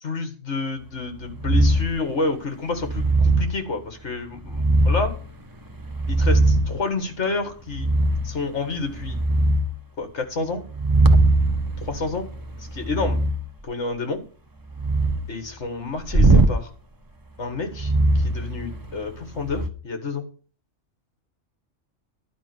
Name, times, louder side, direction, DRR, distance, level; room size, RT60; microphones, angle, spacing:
voice 1, 0.0-5.1 6.1-7.9 8.2-9.2 10.0-10.6 11.9-12.3 12.6-13.2 13.6-14.2 15.3-16.7 17.4-20.2, left 3 dB, 60° left, 7 dB, 2.0 m, -29 dB
sound 1, 1.4-2.0 2.8-3.5 4.5-5.2 5.8-6.8 7.7-8.3 8.8-9.7 10.7-13.4 14.7-15.2 16.1-16.6 17.7-19.0 19.4-19.7, right 2 dB, 20° right, 0.7 m, -20 dB
11.5 x 5.3 x 7.7 m, 0.40 s
omnidirectional pair, 1.3 m